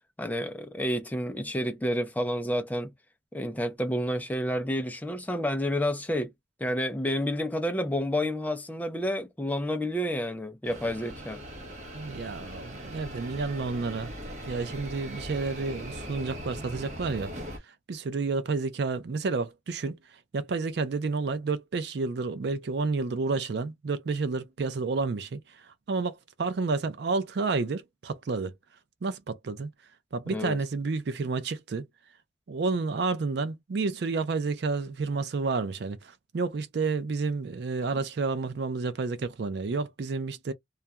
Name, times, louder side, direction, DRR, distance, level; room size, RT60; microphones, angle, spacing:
voice 1, 0.2-2.9 3.3-6.3 6.6-11.4 30.3-30.6, equal, 10° left, 0.4 m, -29 dB
sound 1, 10.6-17.6, equal, 35° right, 0.8 m, -40 dB
voice 2, 11.9-14.1 14.5-17.3 17.9-20.0 20.3-28.5 29.0-29.7 30.1-31.8 32.5-40.5, right 4 dB, 60° right, 0.4 m, -30 dB
2.3 x 2.2 x 2.7 m
head